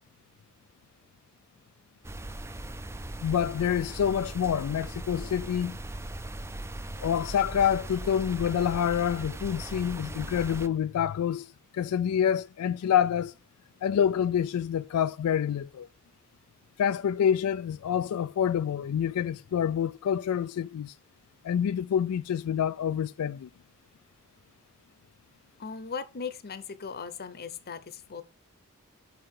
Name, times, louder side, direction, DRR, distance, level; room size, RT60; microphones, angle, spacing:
sound 1, 2.0-10.7, right 1 dB, 10° right, 0.5 m, -39 dB
voice 1, 3.2-5.8 7.0-13.3 13.8-15.9 16.8-20.9 21.4-23.5, left 8 dB, 85° left, 0.3 m, -27 dB
voice 2, 25.6-28.2, left 5 dB, 45° left, 0.8 m, -38 dB
5.8 x 5.5 x 6.4 m
head